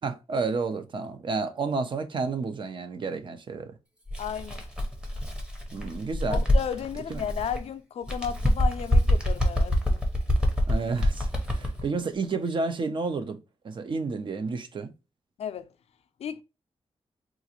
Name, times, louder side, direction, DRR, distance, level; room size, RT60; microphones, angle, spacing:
voice 1, 0.0-3.7 5.7-6.4 7.1-7.2 10.7-13.4 13.6-14.9, right 4 dB, 45° right, 0.6 m, -31 dB
Bird, 4.1-7.6 8.0-11.8, equal, 10° right, 0.8 m, -26 dB
voice 2, 4.2-4.7 6.3-10.0 15.4-15.7 16.2-16.4, left 8 dB, 70° left, 0.4 m, -34 dB
3.8 x 2.4 x 2.8 m
wide cardioid pair, 170°, 11 cm